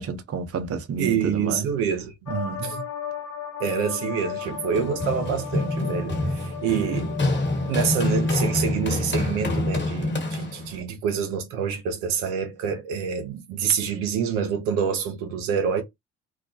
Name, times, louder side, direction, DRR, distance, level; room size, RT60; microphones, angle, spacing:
voice 1, 0.0-1.7 2.3-2.8, right 5 dB, 40° right, 0.7 m, -30 dB
voice 2, 1.0-2.1 2.6-2.8 3.6-7.1 7.7-15.8, right 7 dB, 85° right, 0.7 m, -27 dB
sound 1, 2.3-8.6, left 8 dB, 55° left, 0.7 m, -36 dB
Run, 4.4-10.8, left 2 dB, 30° left, 1.2 m, -26 dB
2.4 x 2.1 x 2.5 m
hypercardioid pair, 50°, 37 cm